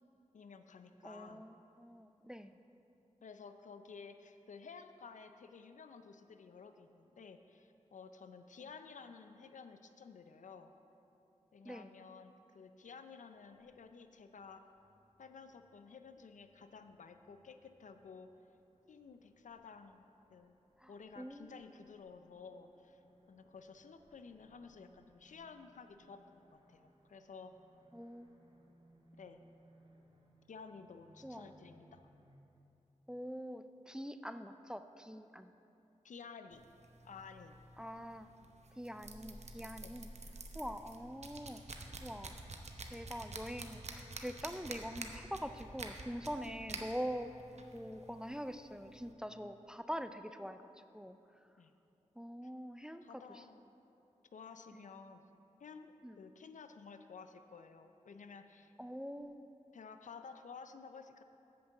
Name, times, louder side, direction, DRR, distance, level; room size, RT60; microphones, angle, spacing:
voice 1, 0.3-1.4 3.2-10.7 11.5-14.6 15.2-18.3 18.9-20.0 20.3-20.6 20.9-23.0 23.3-27.5 29.1-29.4 30.5-32.0 36.0-36.6 37.0-37.6 39.8-39.9 51.6-51.7 53.0-53.6 54.3-55.2 55.6-58.7 59.7-61.2, left 5 dB, 70° left, 8 dB, 0.5 m, -53 dB
voice 2, 1.0-2.6 11.6-11.9 20.8-21.6 27.9-28.7 31.2-31.5 33.1-35.5 37.8-38.3 38.8-40.1 40.5-41.6 42.0-42.3 42.8-47.3 47.7-51.2 52.2-53.4 54.7-54.8 56.0-56.2 58.8-59.5, equal, 5° right, 10 dB, 0.4 m, -44 dB
sound 1, 13.3-32.4, right 1 dB, 40° right, 1.6 m, -69 dB
sound 2, 36.5-49.1, right 2 dB, 60° right, 0.8 m, -50 dB
7.7 x 5.3 x 7.0 m, 2.9 s
cardioid pair, 40°, 13 cm